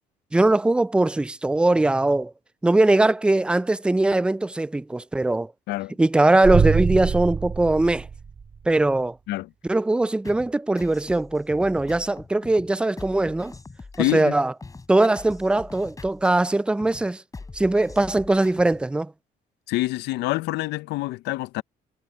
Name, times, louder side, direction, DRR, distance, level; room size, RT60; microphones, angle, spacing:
voice 1, 0.3-2.3 2.6-5.5 6.0-8.1 8.7-9.2 9.6-13.5 14.0-14.5 14.9-17.2 17.5-19.1, right 2 dB, 5° right, 0.3 m, -21 dB
sound 1, 6.4-8.7, right 6 dB, 35° right, 2.0 m, -24 dB
sound 2, 10.2-18.9, left 3 dB, 20° left, 6.5 m, -43 dB
voice 2, 14.0-14.3 19.7-21.6, left 18 dB, 80° left, 0.5 m, -26 dB
cardioid pair, 110°, 17 cm